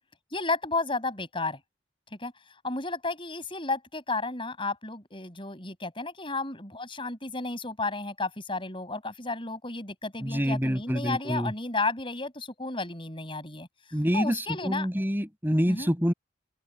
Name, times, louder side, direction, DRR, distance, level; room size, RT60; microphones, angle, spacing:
voice 1, 0.3-1.6 2.2-2.3 2.6-13.7 14.1-14.9 15.7-15.9, left 3 dB, 25° left, 7.4 m, -32 dB
voice 2, 10.2-11.5 13.9-16.1, equal, 10° right, 6.0 m, -27 dB
head